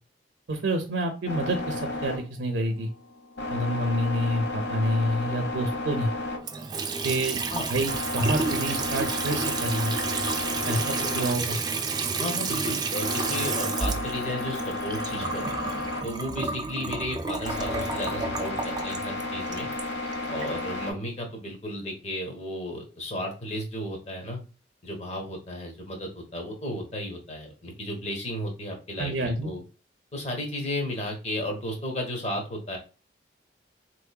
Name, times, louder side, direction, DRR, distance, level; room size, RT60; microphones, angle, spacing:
voice 1, 0.5-2.9 3.5-6.1 7.0-7.4 7.7-9.9 10.7-11.6 29.0-29.5, right 1 dB, 85° right, 4 dB, 0.5 m, -28 dB
sound 1, 1.3-20.9, left 2 dB, 70° left, 0.9 m, -34 dB
Water tap faucet / Sink (filling or washing) / Trickle dribble, 6.4-20.5, right 4 dB, 25° right, 0.3 m, -31 dB
voice 2, 12.2-15.5 16.0-19.7 20.3-24.4 24.8-29.6 30.1-32.8, left 1 dB, 35° left, 2 dB, 1.0 m, -34 dB
3.7 x 3.0 x 2.2 m, 0.35 s
head